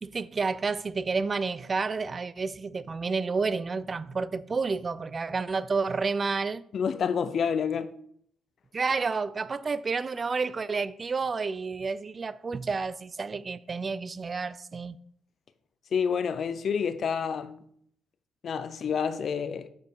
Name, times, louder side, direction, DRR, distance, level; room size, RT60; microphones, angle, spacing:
voice 1, 0.0-6.6 8.7-15.0, right 4 dB, 35° right, 0.3 m, -30 dB
voice 2, 6.7-7.9 15.9-17.6 18.4-19.7, left 6 dB, 55° left, 0.6 m, -28 dB
6.9 x 5.2 x 4.5 m
cardioid pair, 90°, 0 cm